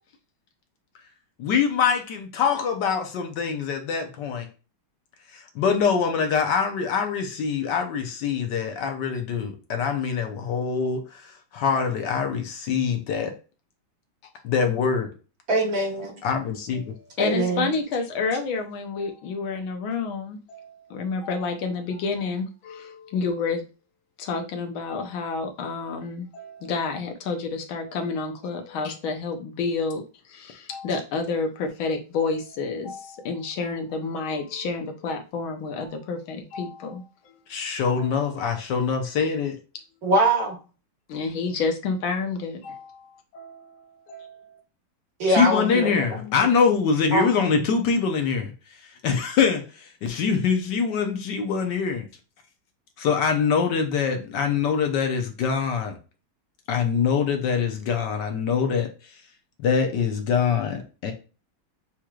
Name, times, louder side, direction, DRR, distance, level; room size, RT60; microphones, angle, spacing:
voice 1, 1.4-4.5 5.3-13.3 14.4-15.1 16.2-16.8 28.8-28.9 37.5-39.6 45.3-48.5 49.0-49.6 50.0-52.1 53.0-56.0 56.7-58.9 59.6-61.1, left 6 dB, 65° left, 1.3 m, -24 dB
voice 2, 15.5-16.1 17.2-17.7 40.0-40.6 45.2-46.3 47.1-47.5, right 2 dB, 50° right, 1.6 m, -23 dB
voice 3, 17.2-23.6 24.2-37.0 37.3-37.4 38.0-38.4 41.1-43.0 43.3-44.4 45.7-45.9, left 4 dB, 90° left, 1.7 m, -29 dB
7.1 x 3.1 x 2.4 m
omnidirectional pair, 2.2 m